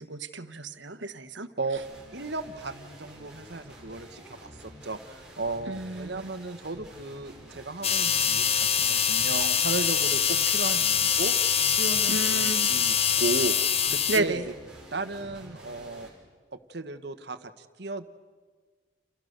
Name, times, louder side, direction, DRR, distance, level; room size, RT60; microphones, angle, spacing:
voice 1, 0.0-1.5 5.7-6.3 12.1-12.7 14.1-14.5, right 2 dB, 75° right, 11 dB, 1.4 m, -31 dB
sound 1, 1.8-16.1, equal, 5° right, 5.8 m, -48 dB
voice 2, 2.1-11.3 11.7-14.4 14.9-16.1 16.5-18.0, right 3 dB, 60° right, 9 dB, 1.4 m, -35 dB
sound 2, 7.8-14.2, left 8 dB, 35° left, 0.9 m, -24 dB
30.0 x 28.5 x 6.8 m, 1.5 s
head